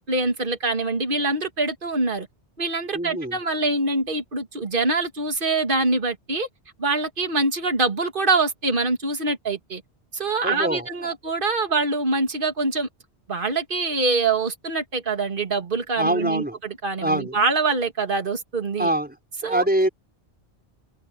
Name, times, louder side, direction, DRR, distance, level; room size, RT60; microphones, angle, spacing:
voice 1, 0.0-2.3 2.6-6.5 6.8-9.8 10.1-12.9 13.3-18.9 19.4-19.7, right 3 dB, 50° right, 2.4 m, -24 dB
voice 2, 2.9-3.4 10.4-11.1 16.0-16.6 17.0-17.3 18.8-19.1 19.4-19.9, right 1 dB, 10° right, 5.2 m, -24 dB
omnidirectional pair, 1.2 m